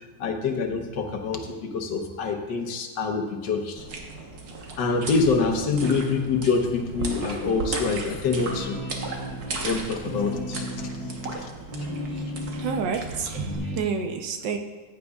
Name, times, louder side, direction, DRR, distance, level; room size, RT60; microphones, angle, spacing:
voice 1, 0.2-3.8 4.8-8.8 9.6-10.9 11.4-11.5, left 4 dB, 80° left, 4 dB, 1.6 m, -26 dB
sound 1, 3.8-13.6, right 3 dB, 60° right, 1.7 m, -36 dB
sound 2, 7.0-7.8 8.2-12.9 13.3-13.8, equal, 20° left, 1.6 m, -34 dB
voice 2, 12.6-14.6, right 6 dB, 90° right, 5 dB, 1.6 m, -29 dB
15.0 x 10.0 x 2.4 m, 1.3 s
omnidirectional pair, 1.9 m